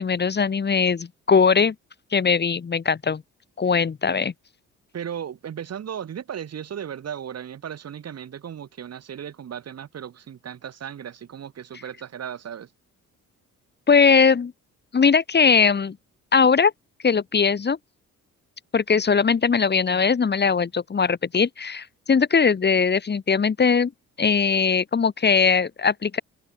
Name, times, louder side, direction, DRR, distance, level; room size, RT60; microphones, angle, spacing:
voice 1, 0.0-1.7 2.1-3.2 3.6-4.3 13.9-14.5 14.9-16.0 16.3-16.7 17.0-17.8 18.7-23.9 24.2-26.2, left 5 dB, 35° left, 1.9 m, -20 dB
voice 2, 4.9-12.7, right 9 dB, 55° right, 3.5 m, -36 dB
cardioid pair, 90°, 30 cm